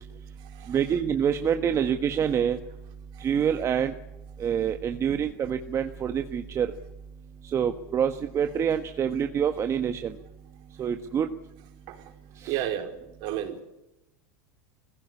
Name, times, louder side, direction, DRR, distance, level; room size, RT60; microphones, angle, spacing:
voice 1, 0.7-2.6 3.2-3.9 4.4-6.7 7.5-10.1 10.8-11.3 12.4-12.6, right 8 dB, 30° right, 7 dB, 1.5 m, -26 dB
voice 2, 12.5-12.9 13.2-13.6, right 11 dB, 55° right, 5 dB, 4.7 m, -31 dB
21.0 x 16.5 x 9.7 m, 0.92 s
supercardioid pair, 110°, 9 cm